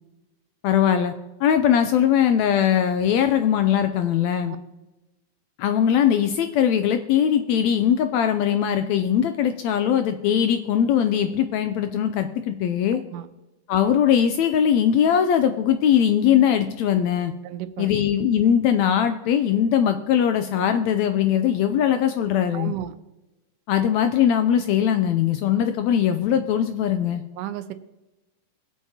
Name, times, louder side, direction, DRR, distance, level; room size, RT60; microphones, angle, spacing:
voice 1, 0.6-1.1 1.4-4.5 5.6-13.0 13.7-17.3 17.8-22.7 23.7-27.2, left 9 dB, 80° left, 8 dB, 1.6 m, -20 dB
voice 2, 12.9-13.3 17.4-17.9 22.5-22.9 27.4-27.7, right 12 dB, 85° right, 10 dB, 2.3 m, -33 dB
21.5 x 8.3 x 2.9 m, 1.0 s
omnidirectional pair, 3.6 m